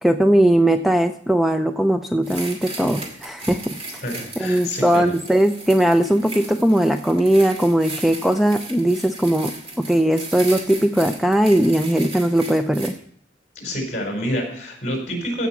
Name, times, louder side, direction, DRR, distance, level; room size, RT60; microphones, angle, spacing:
voice 1, 0.0-3.7 4.4-9.5 9.9-12.9, right 1 dB, ahead, 7 dB, 0.4 m, -19 dB
sound 1, 2.2-12.9, right 2 dB, 35° right, 2.3 m, -36 dB
voice 2, 4.0-5.1 13.5-15.5, equal, 40° left, 1 dB, 4.8 m, -27 dB
15.5 x 6.0 x 5.9 m, 0.63 s
head